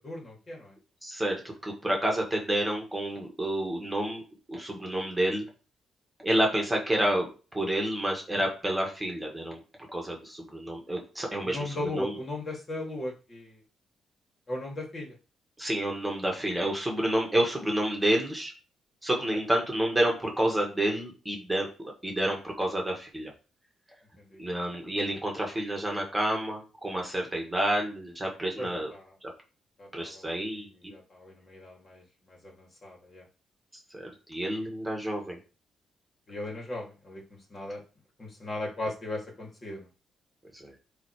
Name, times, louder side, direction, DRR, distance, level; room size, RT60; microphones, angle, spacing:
voice 1, 0.0-0.7 11.4-13.6 14.5-15.1 19.3-19.4 24.3-24.4 28.6-29.0 29.8-30.6 30.9-32.0 32.4-33.2 36.3-37.2 37.5-37.8 38.2-39.9, left 1 dB, 40° left, -1 dB, 2.6 m, -37 dB
voice 2, 1.0-4.2 4.5-5.5 6.2-9.6 9.9-12.2 15.6-18.5 19.0-21.7 22.0-23.3 24.4-28.9 29.2-29.3 29.9-30.9 33.9-35.4 40.5-40.7, right 1 dB, 10° right, 0 dB, 1.9 m, -29 dB
9.7 x 3.3 x 3.3 m, 0.34 s
cardioid pair, 85°, 0 cm